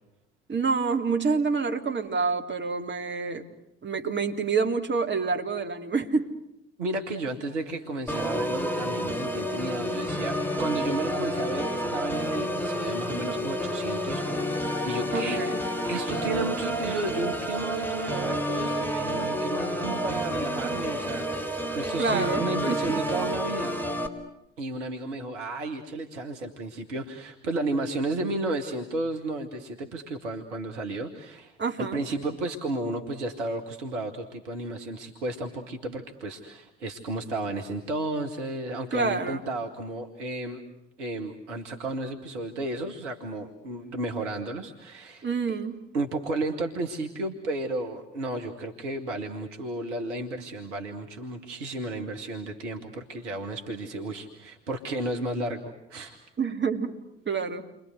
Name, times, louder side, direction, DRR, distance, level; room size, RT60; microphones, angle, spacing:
voice 1, 0.5-3.5 3.8-6.3 15.1-15.6 22.0-23.0 31.6-32.0 38.9-39.4 45.2-45.8 56.4-56.9 57.3-57.6, right 4 dB, 30° right, 4 dB, 3.7 m, -27 dB
voice 2, 6.8-23.7 24.6-40.6 41.0-45.6 45.9-56.2, right 2 dB, 75° right, 4 dB, 2.0 m, -33 dB
Organ, 8.1-24.1, equal, 5° left, 4.2 m, -30 dB
30.0 x 25.0 x 8.0 m, 0.83 s
figure-of-eight pair, 50°, 36 cm